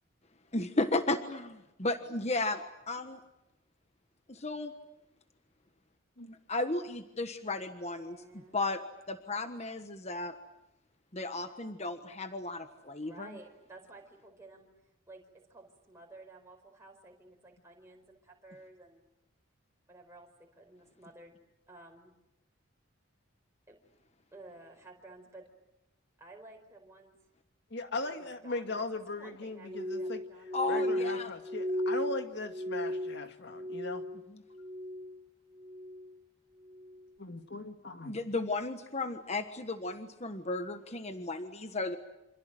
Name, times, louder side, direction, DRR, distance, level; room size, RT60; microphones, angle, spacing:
voice 1, 0.5-1.5 1.8-2.6 2.9-3.2 4.3-4.7 6.5-8.2 8.5-8.8 9.1-10.3 11.1-13.3 30.5-31.3 34.3-34.4 38.0-42.0, left 2 dB, 30° left, 8 dB, 1.4 m, -34 dB
voice 2, 7.9-8.6 13.0-14.7 15.1-19.0 19.9-21.4 21.7-22.1 23.7-23.8 24.3-25.5 26.2-27.2 28.0-30.6, right 2 dB, 15° right, 0 dB, 4.7 m, -53 dB
voice 3, 27.7-30.2 30.7-34.0 37.2-38.2, left 2 dB, 55° left, 7 dB, 2.2 m, -39 dB
Glass, 29.7-34.2 34.5-35.2 35.6-36.1 36.7-37.0, left 1 dB, 30° right, 1.8 m, -35 dB
28.5 x 27.0 x 7.8 m, 0.91 s
head